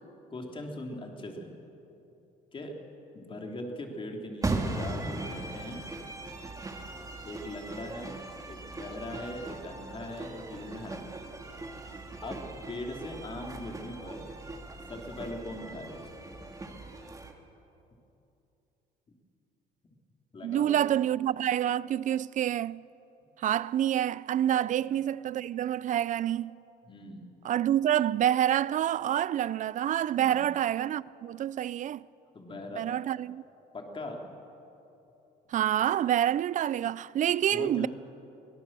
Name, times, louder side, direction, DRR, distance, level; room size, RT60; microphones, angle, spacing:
voice 1, 0.3-1.5 2.5-2.7 3.1-5.8 6.3-6.4 7.2-8.2 8.5-11.0 12.2-14.3 14.9-16.1 20.3-20.9 24.6-24.7 26.9-27.3 30.2-30.5 32.3-32.8 33.7-34.3 37.5-37.9, left 1 dB, 30° left, 3.4 m, -40 dB
sound 1, 4.4-17.3, right 2 dB, 20° right, 2.2 m, -39 dB
voice 2, 20.4-22.8 23.4-26.6 27.4-32.0 32.7-33.4 35.5-37.9, right 11 dB, 50° right, 0.4 m, -27 dB
23.5 x 18.0 x 7.6 m
cardioid pair, 110°, 17 cm